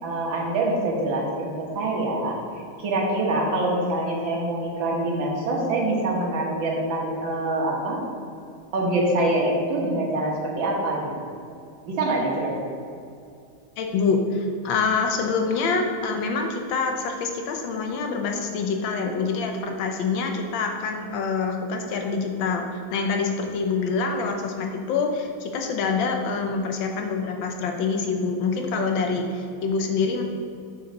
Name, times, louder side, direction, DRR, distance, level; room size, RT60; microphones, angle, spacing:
voice 1, 0.0-2.4 2.8-8.0 8.7-11.1 11.9-12.6, right 2 dB, 65° right, -2 dB, 2.0 m, -25 dB
voice 2, 13.8-30.2, left 4 dB, 70° left, 3 dB, 1.5 m, -26 dB
6.5 x 6.3 x 4.0 m, 2.4 s
omnidirectional pair, 2.3 m